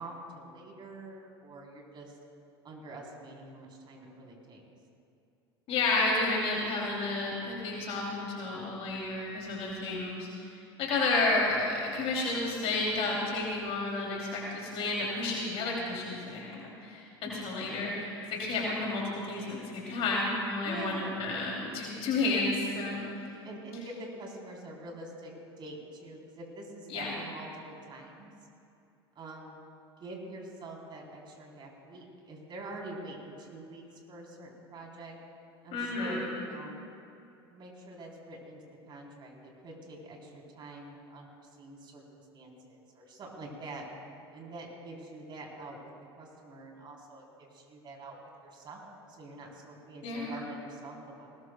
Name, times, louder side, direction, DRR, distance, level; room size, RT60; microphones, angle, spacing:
voice 1, 0.0-2.2 2.6-4.6 20.6-21.5 23.4-28.3 29.2-29.5 30.0-35.2 35.6-36.8 37.4-38.6 38.9-43.9 44.3-45.9 46.2-51.3, right 2 dB, 35° right, -1 dB, 3.7 m, -45 dB
voice 2, 5.7-10.3 10.8-18.1 18.4-23.0 26.9-27.1 35.7-36.3 50.0-50.4, left 3 dB, 45° left, -3 dB, 2.9 m, -31 dB
20.0 x 20.0 x 2.3 m, 2.6 s
figure-of-eight pair, 75°, 14 cm